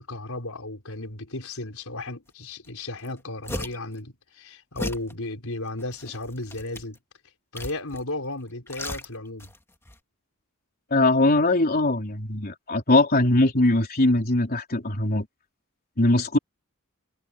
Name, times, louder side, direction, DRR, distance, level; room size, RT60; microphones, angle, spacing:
voice 1, 0.0-7.0 7.5-9.5, left 2 dB, 75° left, 5.0 m, -34 dB
sound 1, 2.6-2.7 3.0-3.9 4.8-5.1 5.8-7.0 7.5-8.1 8.4-9.6 9.8-10.0, left 1 dB, 10° left, 1.9 m, -36 dB
voice 2, 10.9-15.3 16.0-16.4, left 2 dB, 45° left, 3.7 m, -21 dB
head